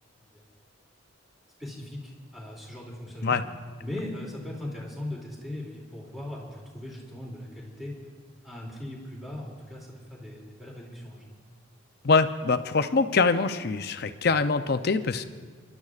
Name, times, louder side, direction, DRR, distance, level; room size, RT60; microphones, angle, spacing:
voice 1, 1.6-3.4 3.8-7.9 8.4-11.3, left 1 dB, ahead, -4 dB, 2.6 m, -39 dB
voice 2, 12.0-15.2, left 4 dB, 50° left, 10 dB, 0.5 m, -24 dB
29.5 x 12.0 x 2.4 m, 1.5 s
head